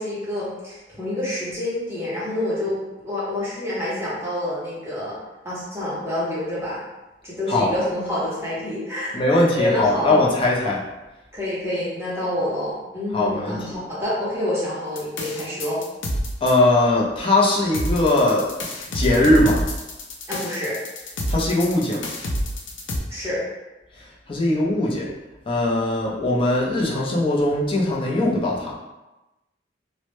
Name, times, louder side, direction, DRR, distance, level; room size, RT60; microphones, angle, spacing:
voice 1, 0.0-5.2 5.4-6.8 7.2-10.2 11.3-15.8 20.3-20.8 23.1-23.4, left 1 dB, 15° right, -9 dB, 0.6 m, -27 dB
voice 2, 9.1-10.8 13.1-13.6 16.4-18.5 18.9-19.7 21.3-22.1 24.3-25.1 25.5-28.8, left 1 dB, 30° left, -3 dB, 0.4 m, -20 dB
sound 1, 15.0-16.5 17.7-23.0, equal, 90° left, 0.4 m, -27 dB
2.0 x 2.0 x 2.9 m, 1.0 s
head